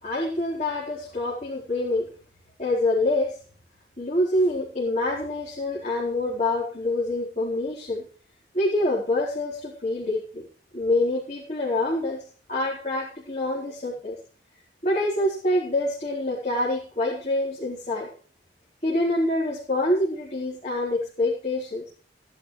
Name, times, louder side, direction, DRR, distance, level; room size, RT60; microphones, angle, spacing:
voice 1, 0.0-2.1 2.6-3.3 4.0-8.1 8.5-10.5 10.7-12.2 12.5-14.2 14.8-18.1 18.8-21.8, left 1 dB, 40° left, -4 dB, 4.1 m, -26 dB
18.0 x 11.0 x 3.3 m, 0.41 s
head